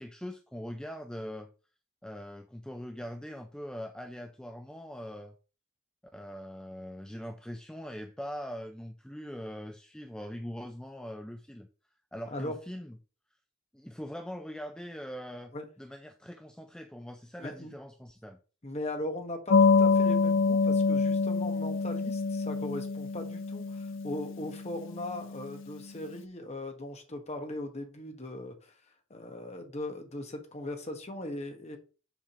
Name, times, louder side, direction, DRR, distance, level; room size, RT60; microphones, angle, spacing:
voice 1, 0.0-1.5 2.0-5.3 6.1-11.7 12.1-13.0 13.7-15.5 15.8-18.4, equal, 5° left, 6 dB, 0.4 m, -42 dB
voice 2, 17.4-17.7 18.6-28.8 29.1-31.8, left 1 dB, 30° left, 5 dB, 1.3 m, -39 dB
sound 1, 19.5-25.7, left 4 dB, 60° left, 0.5 m, -27 dB
7.2 x 3.7 x 5.9 m, 0.37 s
head